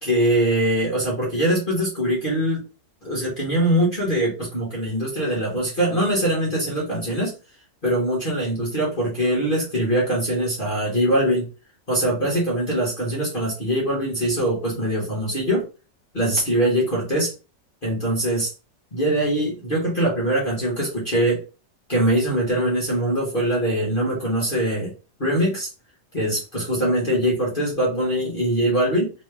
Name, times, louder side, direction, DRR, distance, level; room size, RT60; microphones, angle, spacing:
voice 1, 0.0-2.6 3.0-7.3 7.8-11.5 11.9-15.7 16.1-17.3 17.8-18.5 18.9-21.4 21.9-24.9 25.2-25.7 26.1-29.1, right 1 dB, 35° left, -4 dB, 1.3 m, -22 dB
3.2 x 3.1 x 3.3 m, 0.32 s
omnidirectional pair, 1.8 m